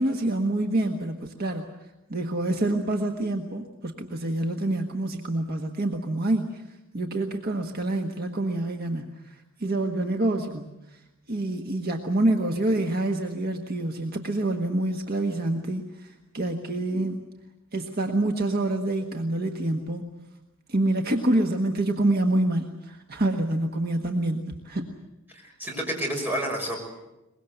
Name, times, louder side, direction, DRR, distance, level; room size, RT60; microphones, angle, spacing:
voice 1, 0.0-1.7 2.1-6.6 6.9-11.0 11.3-17.2 17.7-20.1 20.7-24.9, right 1 dB, 45° right, 4 dB, 1.5 m, -27 dB
voice 2, 25.3-26.8, equal, 10° right, 0 dB, 6.0 m, -29 dB
23.5 x 21.5 x 8.0 m, 0.96 s
head